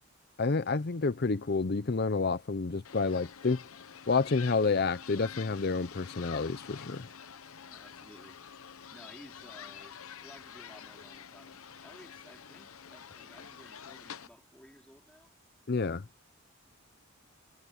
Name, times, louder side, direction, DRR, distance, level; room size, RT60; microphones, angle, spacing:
voice 1, 0.4-3.6 4.1-7.1 15.7-16.0, left 4 dB, 45° left, 0.6 m, -29 dB
sound 1, 2.8-14.3, left 8 dB, 75° left, 0.9 m, -48 dB
voice 2, 7.7-8.4 8.9-15.3, equal, 5° left, 3.4 m, -56 dB
head